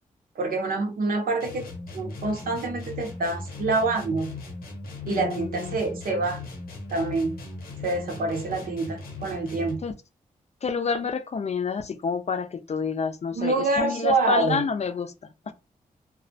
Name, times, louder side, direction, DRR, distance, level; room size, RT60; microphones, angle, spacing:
voice 1, 0.3-4.3 5.1-6.4 6.9-7.4 7.8-9.8 13.3-14.6, right 3 dB, 75° right, 0.8 m, -26 dB
sound 1, 1.4-9.9, left 3 dB, 90° left, 0.8 m, -38 dB
voice 2, 5.1-5.8 9.8-9.9 10.6-15.1 15.5-15.6, left 5 dB, 45° left, 0.5 m, -28 dB
2.3 x 2.0 x 2.7 m
supercardioid pair, 45°, 15 cm